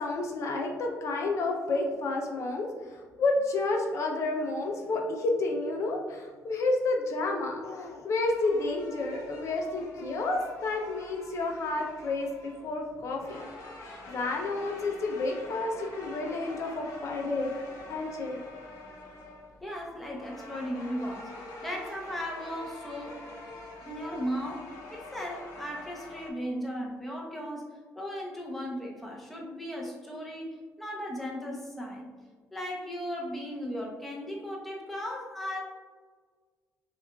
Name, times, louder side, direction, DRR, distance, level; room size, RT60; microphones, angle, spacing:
voice 1, 0.0-13.4 14.1-17.5 17.9-18.4, left 2 dB, 60° left, 2 dB, 0.5 m, -30 dB
sound 1, 8.2-26.3, left 2 dB, 85° left, 0.8 m, -46 dB
voice 2, 19.6-21.3 21.6-23.2 23.8-32.1 32.5-35.6, equal, 5° left, -3 dB, 0.7 m, -36 dB
5.7 x 2.4 x 2.3 m, 1.5 s
cardioid pair, 125°, 6 cm